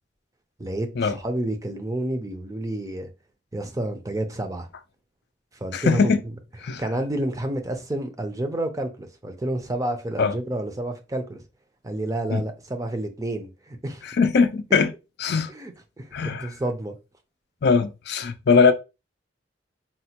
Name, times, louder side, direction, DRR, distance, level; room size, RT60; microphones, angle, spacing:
voice 1, 0.6-3.1 3.5-4.7 5.6-6.3 6.8-11.4 11.8-14.0 15.5-17.0, right 1 dB, 20° right, 0.5 m, -30 dB
voice 2, 5.7-6.2 6.6-6.8 10.2-10.3 12.3-12.4 14.0-14.9 15.2-15.5 16.1-16.5 17.6-18.7, left 5 dB, 60° left, 0.4 m, -20 dB
4.1 x 2.1 x 2.8 m
head